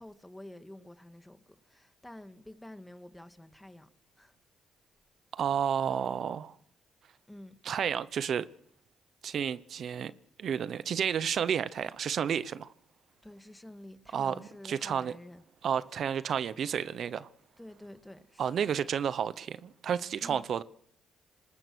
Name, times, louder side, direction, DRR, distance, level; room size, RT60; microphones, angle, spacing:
voice 1, 0.0-3.9 4.2-4.3 7.3-7.6 13.2-15.4 17.6-18.7 20.2-20.4, left 1 dB, 10° left, 1.7 m, -49 dB
voice 2, 5.3-6.6 7.6-8.5 9.2-10.1 10.4-12.7 14.1-15.1 15.6-17.3 18.4-20.6, right 8 dB, 60° right, 0.8 m, -31 dB
26.0 x 20.0 x 6.2 m
cardioid pair, 90°, 0 cm